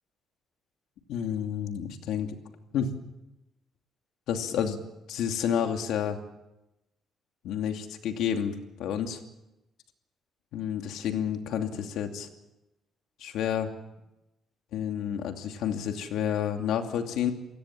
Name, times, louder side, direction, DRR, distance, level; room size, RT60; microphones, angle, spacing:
voice 1, 1.1-2.3 2.7-2.9 4.3-4.8 5.1-6.2 7.4-9.2 10.5-12.3 13.2-13.7 14.7-17.3, left 8 dB, 85° left, 5 dB, 2.6 m, -30 dB
28.5 x 17.0 x 7.5 m, 0.93 s
cardioid pair, 155°, 0 cm